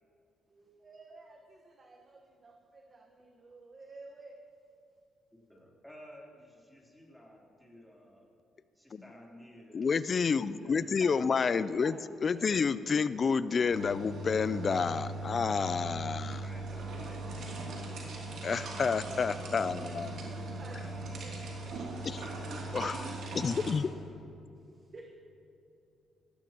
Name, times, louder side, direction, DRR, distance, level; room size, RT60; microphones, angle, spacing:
voice 1, 0.5-4.4 10.7-11.2 11.5-12.6 16.7-16.8 18.8-21.4 24.7-25.1, right 3 dB, 35° right, 1 dB, 1.3 m, -51 dB
voice 2, 5.5-8.3 8.8-10.0 10.5-11.5 16.4-17.2 22.4-23.0 23.3-24.1, equal, ahead, -4 dB, 3.6 m, -53 dB
voice 3, 9.7-16.4 18.4-20.1 22.0-22.3 22.7-23.0 23.3-23.9, left 5 dB, 45° left, 15 dB, 0.4 m, -29 dB
sound 1, 13.7-23.7, right 2 dB, 70° right, 2.8 m, -39 dB
18.0 x 15.0 x 3.0 m, 2.6 s
cardioid pair, 90°, 0 cm